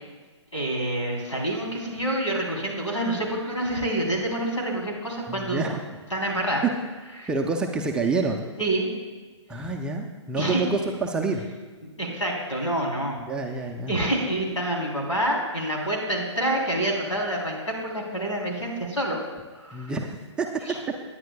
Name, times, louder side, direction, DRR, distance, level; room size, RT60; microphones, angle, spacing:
voice 1, 0.5-5.7 6.1-6.6 7.2-7.3 8.6-8.9 10.4-10.7 12.0-13.2 13.9-19.2 19.6-19.9, right 1 dB, 85° left, -1 dB, 3.3 m, -27 dB
voice 2, 5.3-5.8 7.3-8.5 9.5-11.5 13.2-14.0 19.7-20.5, right 3 dB, 5° right, 1 dB, 0.4 m, -28 dB
19.0 x 9.8 x 2.2 m, 1.4 s
figure-of-eight pair, 130°, 16 cm